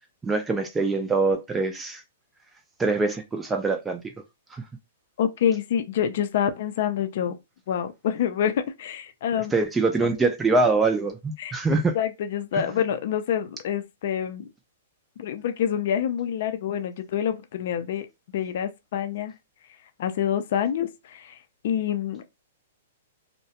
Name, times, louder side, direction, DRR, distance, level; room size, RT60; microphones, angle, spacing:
voice 1, 0.2-2.0 2.8-4.1 4.5-4.6 9.5-12.0 12.5-12.7, right 3 dB, 10° right, 0.4 m, -24 dB
voice 2, 5.2-7.4 7.7-9.5 10.0-10.1 11.4-11.6 11.9-14.5 15.2-18.1 18.3-19.3 20.0-22.2, left 9 dB, 60° left, 0.4 m, -27 dB
2.3 x 2.1 x 2.8 m
hypercardioid pair, 145°, 0 cm